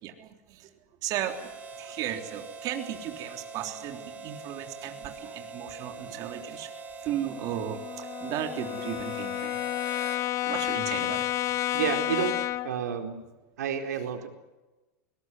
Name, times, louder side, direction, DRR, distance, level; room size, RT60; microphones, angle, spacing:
voice 1, 1.0-1.4 1.8-6.7 7.0-7.8 8.2-9.6 10.4-11.3, right 11 dB, 45° right, 4 dB, 3.5 m, -35 dB
Harmonica, 1.2-10.3, right 4 dB, 15° right, 5.3 m, -43 dB
Brass instrument, 7.3-12.8, left 13 dB, 35° left, 0.8 m, -31 dB
voice 2, 11.7-12.4 12.6-13.2 13.6-14.3, right 8 dB, 90° right, 4 dB, 4.3 m, -30 dB
22.0 x 20.0 x 9.5 m, 1.1 s
supercardioid pair, 130°, 9 cm